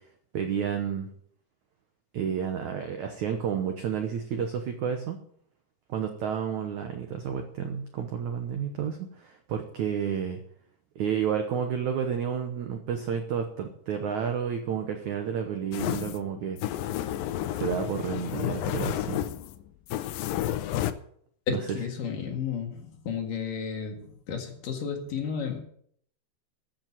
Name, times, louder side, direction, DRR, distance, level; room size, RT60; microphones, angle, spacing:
voice 1, 0.3-1.1 2.1-5.2 5.9-10.4 11.0-16.6 17.5-19.3 21.5-21.6, right 7 dB, 75° right, 6 dB, 1.7 m, -31 dB
sound 1, 15.7-20.9, left 12 dB, 85° left, 2.0 m, -31 dB
voice 2, 21.5-25.6, left 7 dB, 60° left, 2 dB, 3.2 m, -32 dB
14.5 x 7.7 x 7.3 m, 0.64 s
omnidirectional pair, 4.9 m